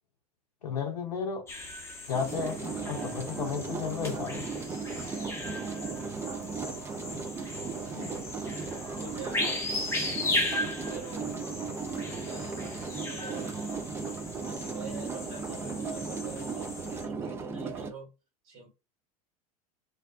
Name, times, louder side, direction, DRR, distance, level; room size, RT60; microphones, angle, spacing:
voice 1, 0.6-1.5 2.1-4.5, left 6 dB, 75° left, 0.5 m, -33 dB
sound 1, 1.5-17.1, left 2 dB, 15° left, 0.8 m, -37 dB
sound 2, 2.1-17.9, right 5 dB, 15° right, 0.3 m, -36 dB
voice 2, 7.8-8.2 9.0-9.6 10.9-11.3 11.9-12.6 12.9-13.5 14.4-18.1 18.4-18.7, right 4 dB, 55° right, 1.5 m, -46 dB
2.6 x 2.1 x 2.3 m
figure-of-eight pair, 85°, 20 cm